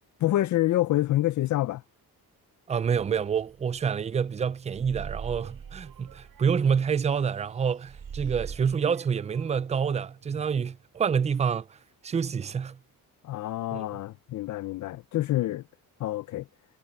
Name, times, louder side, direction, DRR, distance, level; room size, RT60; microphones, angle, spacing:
voice 1, 0.2-1.8 13.2-15.6 16.0-16.4, left 15 dB, 55° left, 0.5 m, -27 dB
voice 2, 2.7-11.7 12.0-12.8 13.7-14.0, right 6 dB, 20° right, 0.3 m, -27 dB
sound 1, 3.0-4.3 4.7-7.6 7.9-8.8, right 7 dB, 35° right, 5.4 m, -41 dB
sound 2, 4.7-11.0, right 12 dB, 80° right, 7.2 m, -56 dB
cardioid pair, 170°, 37 cm